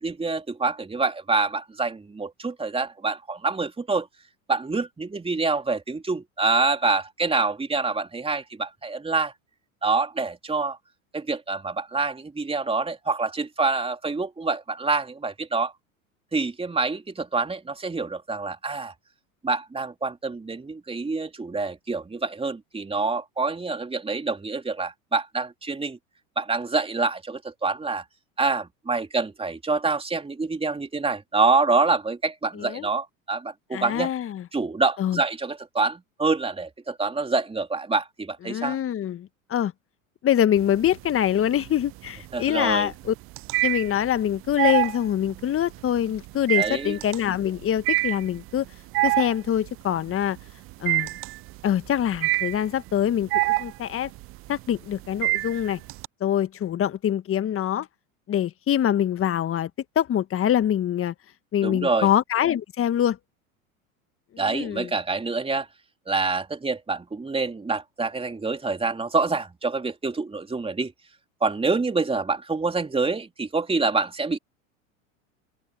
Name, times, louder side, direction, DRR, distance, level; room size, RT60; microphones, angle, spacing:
voice 1, 0.0-4.1 4.5-9.3 9.8-10.8 11.1-15.7 16.3-18.9 19.4-26.0 26.4-28.0 28.4-34.1 34.5-38.8 42.3-42.9 46.5-46.9 61.6-62.1 64.4-65.7 66.1-70.9 71.4-74.4, right 3 dB, 15° right, 3.3 m, -26 dB
voice 2, 32.5-32.9 33.7-34.5 35.0-35.2 38.5-39.7 40.2-43.1 43.6-48.7 49.0-50.4 50.8-51.1 51.6-54.1 54.5-55.8 56.2-57.9 58.3-59.7 59.9-61.1 61.5-63.2 64.3-64.9, left 10 dB, 30° left, 1.6 m, -24 dB
sound 1, 40.6-41.2 41.6-56.1, right 20 dB, 35° right, 0.4 m, -26 dB
open air
hypercardioid pair, 90°, 41 cm